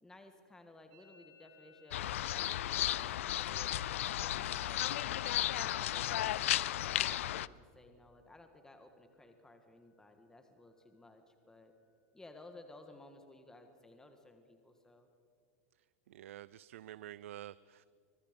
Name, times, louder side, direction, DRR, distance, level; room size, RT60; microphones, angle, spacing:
voice 1, 0.0-3.8 4.2-5.1 5.5-11.7 12.1-15.1, left 2 dB, 10° left, 6 dB, 1.7 m, -57 dB
sound 1, 1.9-7.5, left 13 dB, 85° left, 0.5 m, -34 dB
Musical instrument, 7.9-8.6 8.8-9.4 9.6-10.2 10.5-12.5, left 1 dB, 55° right, 5.5 m, -69 dB
voice 2, 16.1-17.9, right 13 dB, 85° right, 19 dB, 0.4 m, -49 dB
25.0 x 20.5 x 5.3 m, 2.5 s
supercardioid pair, 125°, 7 cm